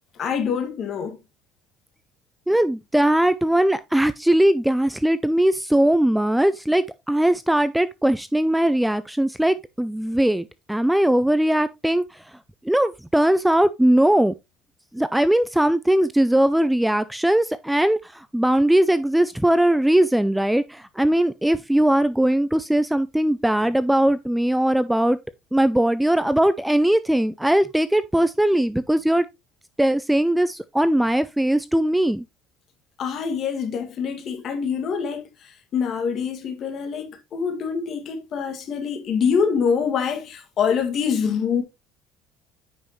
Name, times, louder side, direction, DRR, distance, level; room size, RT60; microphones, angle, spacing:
voice 1, 0.2-1.2 33.0-35.3 35.7-41.6, left 6 dB, 45° left, 2.1 m, -25 dB
voice 2, 2.5-12.2 12.6-14.3 14.9-25.2 25.5-29.3 29.8-32.2, right 1 dB, 5° right, 0.4 m, -20 dB
9.5 x 5.4 x 3.0 m
cardioid pair, 120°, 0 cm